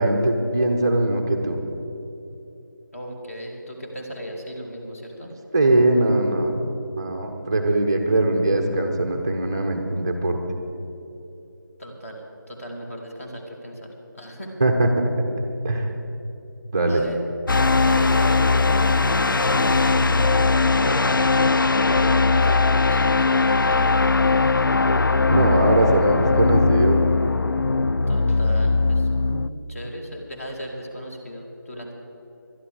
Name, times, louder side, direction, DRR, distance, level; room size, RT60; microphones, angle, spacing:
voice 1, 0.0-1.6 5.5-6.7 7.0-10.4 14.6-14.9 15.6-15.9 16.7-17.0 25.3-27.0 29.3-29.5, right 2 dB, 10° right, 4 dB, 0.6 m, -21 dB
voice 2, 2.9-5.3 11.8-14.5 16.9-17.2 17.8-20.5 20.7-21.4 21.7-23.8 28.1-29.1 29.7-31.9, equal, 40° left, 0 dB, 2.1 m, -37 dB
sound 1, 17.5-29.5, left 3 dB, 70° left, 0.4 m, -19 dB
11.5 x 11.0 x 6.5 m, 2.9 s
figure-of-eight pair, 165°, 11 cm